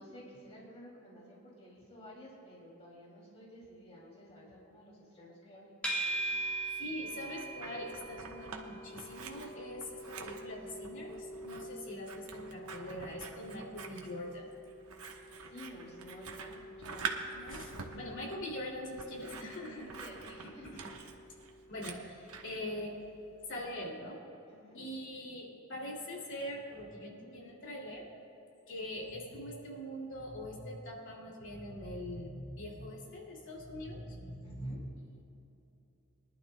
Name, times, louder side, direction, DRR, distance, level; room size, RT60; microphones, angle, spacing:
voice 1, 0.0-5.7 15.4-17.1 19.1-20.7 24.5-24.8 34.4-34.8, equal, 30° left, -5 dB, 2.6 m, -53 dB
sound 1, 5.8-23.0, right 2 dB, 5° left, 2.8 m, -44 dB
voice 2, 6.8-14.5 17.3-19.9 20.4-20.5 21.7-23.0 23.5-24.2 24.7-28.0 28.7-34.8, left 1 dB, 60° left, -2 dB, 2.6 m, -43 dB
Scissors, 7.1-8.6 8.9-22.6, right 5 dB, 80° right, 1.1 m, -46 dB
23.0 x 11.5 x 2.2 m, 3.0 s
head